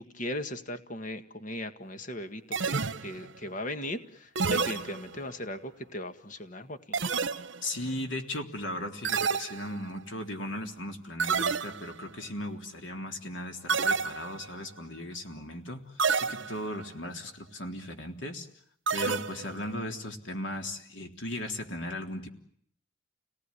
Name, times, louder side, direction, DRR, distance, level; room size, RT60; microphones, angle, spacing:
voice 1, 0.0-7.0, left 1 dB, 45° left, 9 dB, 1.8 m, -38 dB
sound 1, 2.5-3.4 4.4-5.4 6.9-7.8 9.0-10.1 11.2-12.0 13.7-14.6 16.0-16.8 18.9-19.7, right 5 dB, 75° right, 1.0 m, -30 dB
voice 2, 7.6-15.8 16.2-18.5 18.9-22.3, left 1 dB, 80° left, 4 dB, 3.5 m, -37 dB
30.0 x 19.0 x 9.8 m, 0.67 s
head